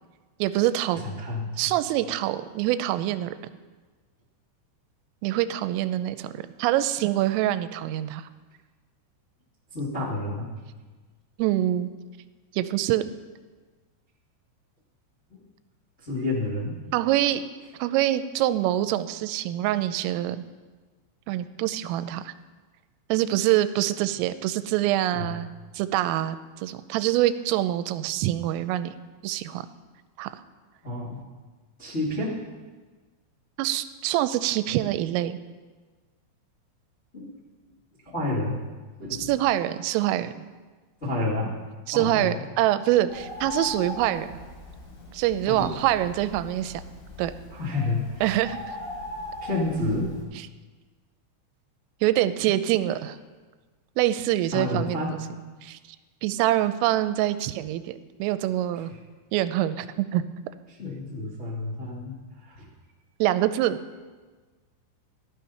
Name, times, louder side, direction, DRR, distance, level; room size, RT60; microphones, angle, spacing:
voice 1, 0.4-1.0 1.6-3.3 5.2-8.2 11.4-11.9 12.5-13.0 16.9-17.4 17.8-20.4 21.3-22.3 23.1-25.5 25.7-28.9 29.2-29.7 30.2-30.4 33.6-35.4 39.1-40.3 41.9-44.4 45.1-46.8 47.2-47.3 48.2-48.8 52.0-53.2 54.0-55.2 55.6-55.8 56.2-58.9 59.3-60.2 63.2-63.8, right 13 dB, 90° right, 12 dB, 3.2 m, -25 dB
voice 2, 1.0-1.7 9.7-10.5 15.3-15.4 16.0-16.8 25.1-25.3 30.8-31.2 31.8-32.4 37.1-37.3 38.0-38.6 39.0-39.3 41.0-41.5 41.9-42.4 45.5-45.7 47.5-48.2 49.4-50.1 54.4-55.2 58.7-58.8 60.8-62.2 62.4-62.7, left 2 dB, 30° left, -7 dB, 1.2 m, -30 dB
Bird, 43.1-50.2, left 2 dB, 50° left, 5.6 m, -39 dB
16.0 x 11.5 x 5.7 m, 1.4 s
omnidirectional pair, 5.8 m